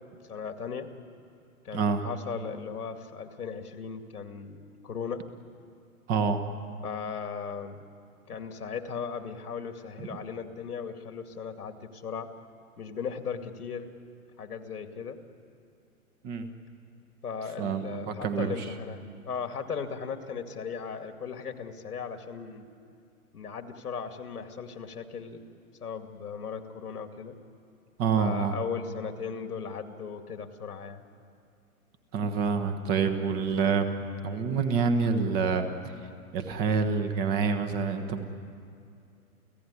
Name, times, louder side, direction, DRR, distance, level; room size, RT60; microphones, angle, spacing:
voice 1, 0.3-0.9 1.6-4.6 4.8-5.2 6.8-7.9 8.3-12.3 12.8-13.9 14.4-15.2 17.2-22.7 23.3-25.4 25.8-27.4 28.2-31.0, left 6 dB, 85° left, 6 dB, 2.4 m, -37 dB
voice 2, 1.7-2.0 6.1-6.4 16.2-16.5 17.6-18.6 28.0-28.6 32.1-35.9 36.3-38.3, right 5 dB, 20° right, 7 dB, 1.3 m, -27 dB
30.0 x 16.0 x 9.8 m, 2.4 s
hypercardioid pair, 150°, 44 cm